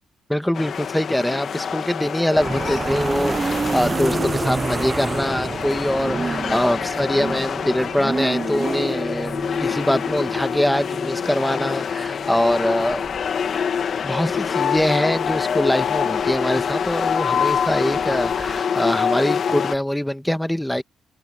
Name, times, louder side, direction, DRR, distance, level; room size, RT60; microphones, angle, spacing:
voice 1, 0.3-13.1 14.0-20.8, left 1 dB, 5° left, 1.6 m, -23 dB
sound 1, 0.5-19.7, left 7 dB, 55° left, 1.7 m, -26 dB
sound 2, 2.3-18.6, right 4 dB, 30° right, 0.5 m, -30 dB
open air
cardioid pair, 90°, 0 cm